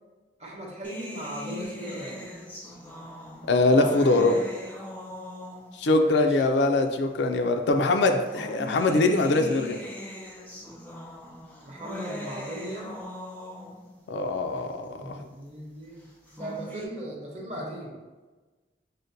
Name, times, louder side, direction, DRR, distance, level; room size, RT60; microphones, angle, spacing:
voice 1, 0.4-2.2 5.8-6.4 8.3-8.5 11.6-13.0 14.9-18.0, right 1 dB, 40° right, -1 dB, 0.7 m, -38 dB
sound 1, 0.8-5.9 6.8-6.9 8.0-13.9 16.1-16.8, left 1 dB, 10° left, 0.4 m, -40 dB
voice 2, 3.4-4.4 5.8-9.8 14.1-15.1, left 2 dB, 75° left, 5 dB, 0.4 m, -22 dB
6.3 x 2.1 x 2.6 m, 1.3 s
head